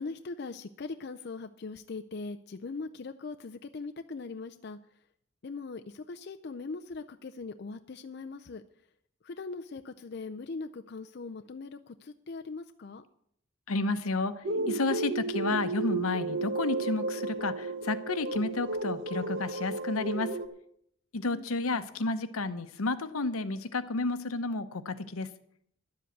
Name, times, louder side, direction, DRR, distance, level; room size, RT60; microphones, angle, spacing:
voice 1, 0.0-4.8 5.4-8.6 9.2-13.0 21.3-21.9, left 4 dB, 50° left, 6 dB, 0.5 m, -40 dB
voice 2, 13.7-20.3 21.1-25.3, left 3 dB, 85° left, 11 dB, 0.9 m, -31 dB
sound 1, 14.4-20.5, right 2 dB, 60° right, 1.0 m, -33 dB
11.5 x 7.7 x 8.0 m, 0.69 s
head